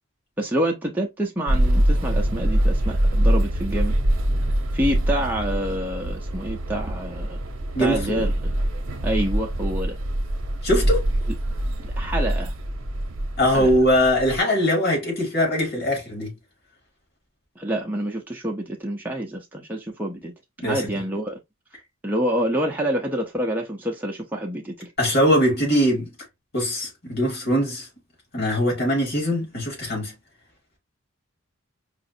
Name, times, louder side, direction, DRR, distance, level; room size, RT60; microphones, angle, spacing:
voice 1, 0.4-4.0 4.7-7.4 7.8-8.5 9.0-10.0 11.8-12.5 13.5-13.7 17.6-20.3 20.6-21.4 22.0-24.9, right 1 dB, 10° right, 0.5 m, -27 dB
sound 1, 1.5-14.4, right 1 dB, 65° right, 0.7 m, -24 dB
voice 2, 7.7-8.2 10.6-11.1 13.4-16.3 20.6-20.9 25.0-26.1 26.5-27.9 28.3-30.1, equal, 50° left, 2.3 m, -21 dB
4.9 x 2.4 x 2.6 m
head